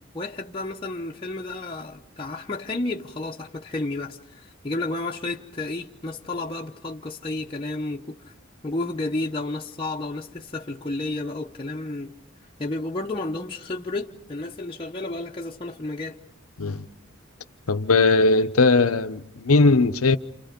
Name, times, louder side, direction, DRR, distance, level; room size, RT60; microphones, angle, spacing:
voice 1, 0.1-8.3 8.6-12.1 12.6-16.2, left 2 dB, 25° left, 0.9 m, -31 dB
voice 2, 17.7-20.2, left 3 dB, 90° left, 0.9 m, -19 dB
29.0 x 28.5 x 5.2 m
head